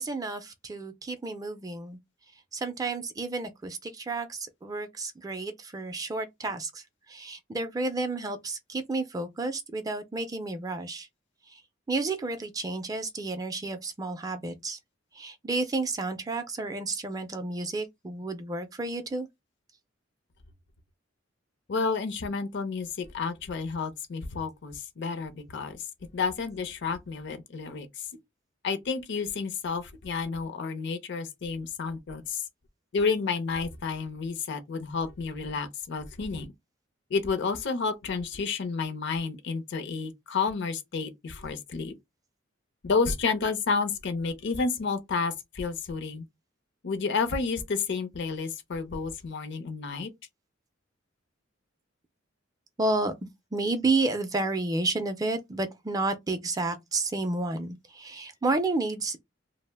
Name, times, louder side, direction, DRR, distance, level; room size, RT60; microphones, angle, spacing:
voice 1, 0.0-2.0 2.5-11.1 11.5-11.6 11.9-14.8 15.1-19.3 52.8-53.1 53.5-59.2, right 3 dB, 20° right, 0.3 m, -31 dB
voice 2, 21.7-25.8 26.1-28.0 28.6-32.4 32.9-36.5 37.1-41.9 42.8-46.2 46.8-50.1, left 4 dB, 65° left, 0.5 m, -30 dB
2.4 x 2.0 x 3.3 m
head